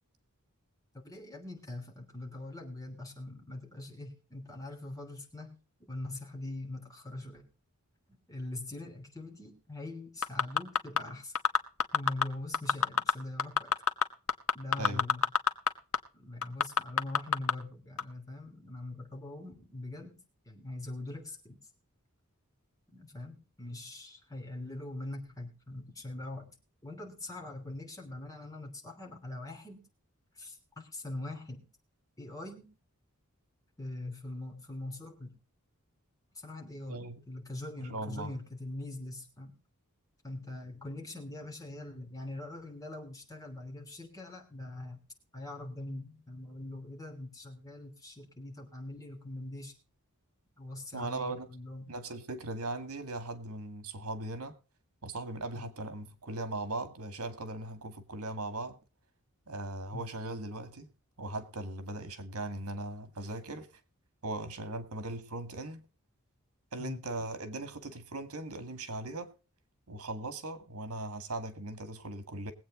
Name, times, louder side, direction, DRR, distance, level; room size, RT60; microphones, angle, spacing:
voice 1, 1.0-7.5 8.1-11.3 11.9-13.7 14.5-15.3 16.1-21.6 22.9-26.5 26.8-29.8 30.3-31.6 32.2-32.7 33.8-35.4 36.3-39.6 40.2-45.0 45.3-49.7 50.6-51.9 55.5-55.7 59.9-60.1 66.8-67.0, left 2 dB, 15° left, 3.1 m, -43 dB
sound 1, 10.2-11.0 11.4-12.2 12.5-13.1 13.4-15.7 15.9-16.0 16.4-17.5 18.0-18.1, left 6 dB, 70° left, 1.1 m, -25 dB
voice 2, 37.9-38.3 50.9-51.5 51.9-54.6 55.0-58.8 59.5-60.9 61.2-63.7 64.2-65.8 66.7-69.3 69.9-72.5, right 2 dB, 85° right, 1.9 m, -39 dB
21.5 x 8.3 x 3.7 m
head